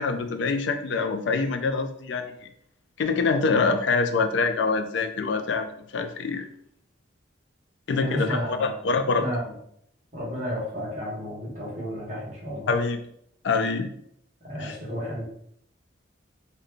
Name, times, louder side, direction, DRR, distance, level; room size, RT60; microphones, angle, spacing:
voice 1, 0.0-2.5 3.0-6.4 7.9-9.3 12.7-13.0 13.4-13.9 14.6-14.8, left 4 dB, 70° left, 8 dB, 0.4 m, -25 dB
voice 2, 8.0-8.7 9.2-9.5 10.1-12.7 14.4-15.2, equal, 40° right, -6 dB, 1.1 m, -32 dB
3.8 x 2.2 x 3.3 m, 0.70 s
head